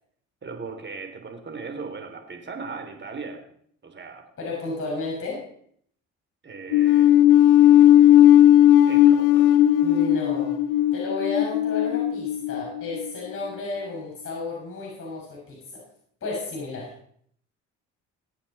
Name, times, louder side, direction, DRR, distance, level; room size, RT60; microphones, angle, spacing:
voice 1, 0.4-3.4 3.8-4.2 6.4-7.1 8.9-9.5, right 4 dB, 35° right, 5 dB, 3.3 m, -37 dB
voice 2, 4.4-5.5 9.8-10.6 10.9-15.8 16.2-16.9, left 3 dB, 45° left, -2 dB, 6.1 m, -32 dB
sound 1, 6.7-13.1, left 12 dB, 70° left, 0.8 m, -16 dB
22.0 x 8.7 x 4.3 m, 0.64 s
supercardioid pair, 75°, 31 cm